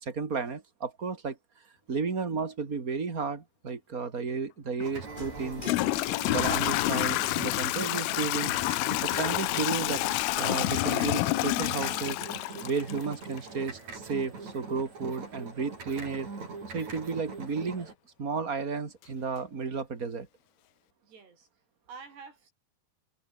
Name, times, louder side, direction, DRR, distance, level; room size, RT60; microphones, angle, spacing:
voice 1, 0.0-1.4 1.9-5.6 6.3-8.5 9.0-10.0 10.4-12.2 12.6-16.3 16.7-17.9 18.2-20.3, right 5 dB, 25° right, 2.3 m, -33 dB
Toilet flush / Trickle dribble, 4.8-4.9 5.6-13.4, left 21 dB, 85° left, 2.2 m, -28 dB
sound 1, 4.8-17.9, right 4 dB, 40° right, 7.2 m, -42 dB
sound 2, 5.1-11.2, left 1 dB, 10° left, 4.5 m, -48 dB
voice 2, 21.0-22.5, right 5 dB, 75° right, 8.4 m, -49 dB
omnidirectional pair, 4.9 m